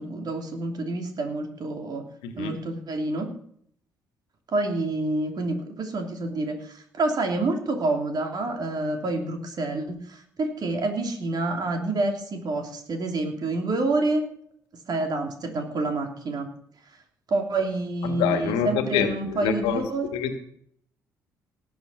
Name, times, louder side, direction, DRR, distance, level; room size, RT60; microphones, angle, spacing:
voice 1, 0.0-2.0 2.3-3.3 4.5-14.2 14.9-16.5 17.3-20.1, right 2 dB, 50° right, 3 dB, 3.1 m, -28 dB
voice 2, 18.0-19.8 20.1-20.3, left 8 dB, 75° left, 7 dB, 1.7 m, -26 dB
18.5 x 7.4 x 5.7 m, 0.64 s
hypercardioid pair, 45°, 9 cm